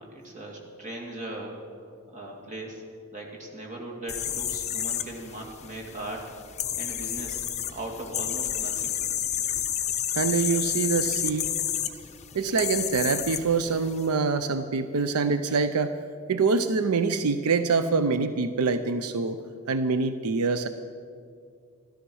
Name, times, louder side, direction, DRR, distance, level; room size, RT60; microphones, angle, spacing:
voice 1, 0.0-1.6 2.1-2.8 3.1-6.3 6.7-7.4 7.7-9.0, right 1 dB, 35° right, -1 dB, 2.4 m, -38 dB
sound 1, 4.1-14.1, left 10 dB, 30° left, 0.6 m, -31 dB
voice 2, 10.2-11.5 12.3-16.0 16.3-19.4 19.7-20.7, right 4 dB, 85° right, 10 dB, 0.5 m, -25 dB
13.0 x 13.0 x 6.2 m, 2.3 s
head